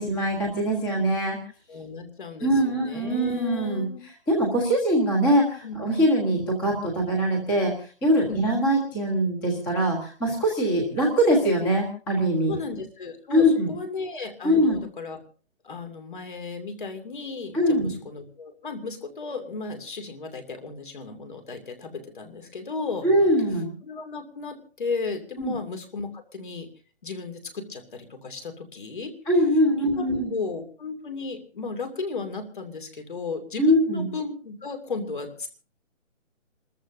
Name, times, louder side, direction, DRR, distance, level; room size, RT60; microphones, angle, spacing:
voice 1, 0.0-1.4 2.4-3.8 4.3-12.5 13.3-13.7 14.4-14.8 17.5-17.9 23.0-23.7 25.4-25.5 29.3-30.3 33.6-34.1, equal, 5° left, -3 dB, 1.4 m, -22 dB
voice 2, 1.7-4.0 5.6-5.8 8.3-8.4 10.3-10.4 12.5-15.2 15.6-23.1 23.8-26.7 27.0-29.1 29.7-30.0 30.3-35.5, left 4 dB, 40° left, 7 dB, 2.7 m, -35 dB
28.5 x 14.0 x 2.7 m, 0.42 s
hypercardioid pair, 180°, 37 cm